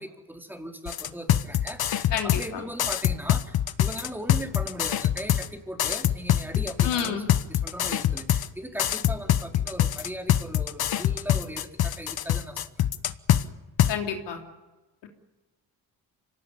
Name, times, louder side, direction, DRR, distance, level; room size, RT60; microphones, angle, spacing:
voice 1, 0.0-12.9, equal, 5° right, 2 dB, 4.1 m, -39 dB
sound 1, 0.9-2.5 2.8-5.5 5.8-8.5 8.8-13.4 13.8-13.9, left 11 dB, 65° left, 1.2 m, -24 dB
voice 2, 2.1-2.6 6.8-7.3 13.9-14.4, left 8 dB, 85° left, 3 dB, 3.3 m, -29 dB
25.0 x 18.0 x 10.0 m, 1.1 s
cardioid pair, 75°, 41 cm